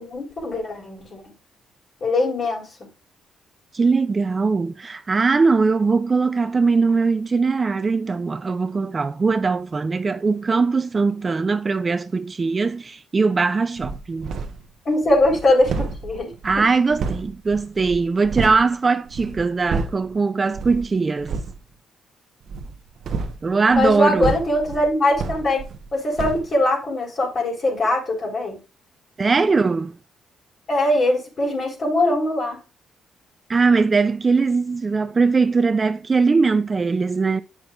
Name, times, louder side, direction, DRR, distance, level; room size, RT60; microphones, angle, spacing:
voice 1, 0.0-1.3 2.0-2.9 14.9-16.3 23.7-25.6 25.9-28.6 30.7-32.6, left 1 dB, 45° left, 4.1 m, -21 dB
voice 2, 3.7-14.3 16.4-21.3 23.4-24.3 29.2-30.0 33.5-37.4, right 4 dB, 30° right, 0.5 m, -20 dB
sound 1, 13.8-14.7 15.0-18.7 19.1-20.1 20.5-20.9 21.2-21.6 22.4-25.9 26.2-26.5, right 4 dB, 65° right, 1.0 m, -30 dB
9.7 x 6.1 x 2.5 m
cardioid pair, 90°, 0 cm